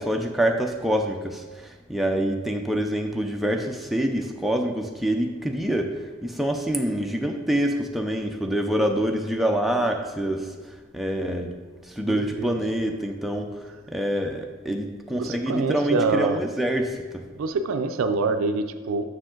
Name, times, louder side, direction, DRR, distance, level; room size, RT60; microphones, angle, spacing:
voice 1, 0.0-10.5 10.9-11.5 11.9-13.6 13.9-17.2, right 1 dB, ahead, 2 dB, 0.4 m, -26 dB
voice 2, 12.0-12.6 15.1-16.4 17.4-19.0, right 3 dB, 85° right, 8 dB, 0.4 m, -26 dB
6.3 x 5.0 x 3.7 m, 1.4 s
head